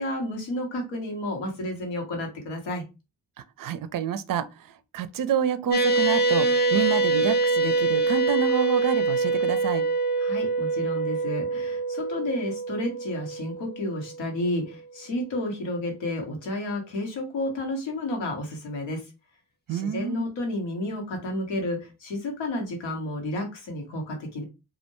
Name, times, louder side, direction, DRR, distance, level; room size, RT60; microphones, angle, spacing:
voice 1, 0.0-2.8 10.2-19.1 19.7-24.4, left 1 dB, 80° left, 1.0 m, -31 dB
voice 2, 3.4-9.9 19.7-20.3, right 8 dB, 50° right, 0.5 m, -28 dB
sound 1, 5.7-14.4, right 3 dB, 20° left, 0.6 m, -25 dB
2.3 x 2.1 x 3.0 m
supercardioid pair, 45°, 45 cm